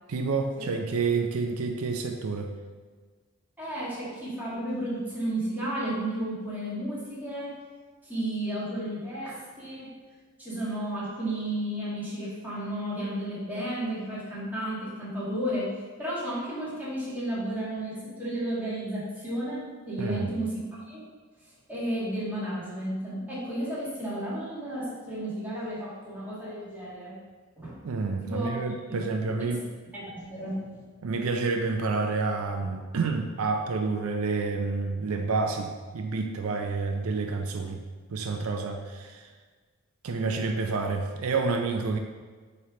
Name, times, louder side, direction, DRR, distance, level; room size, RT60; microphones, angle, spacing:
voice 1, 0.1-2.5 20.0-20.3 27.8-29.6 31.0-37.8 38.1-39.3 40.0-42.0, right 4 dB, 75° right, 5 dB, 0.5 m, -29 dB
voice 2, 3.6-7.5 8.0-9.9 10.4-15.7 16.0-20.6 20.9-21.0 21.7-27.2 27.6-27.8 28.2-28.5 28.9-29.0 29.5-29.6 29.9-30.8, right 1 dB, 10° right, -9 dB, 1.9 m, -33 dB
8.6 x 3.3 x 3.8 m, 1.5 s
head